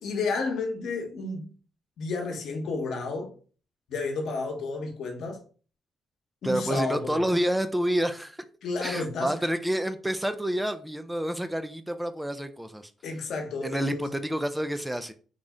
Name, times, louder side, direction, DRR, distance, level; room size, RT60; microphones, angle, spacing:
voice 1, 0.0-1.5 2.0-3.3 3.9-5.4 6.4-7.3 8.6-9.3 13.0-14.1, left 3 dB, 70° left, 1.0 m, -31 dB
voice 2, 6.4-8.4 8.8-12.9 13.6-15.1, equal, 5° right, 0.3 m, -28 dB
3.7 x 2.0 x 3.6 m
cardioid pair, 90°, 0 cm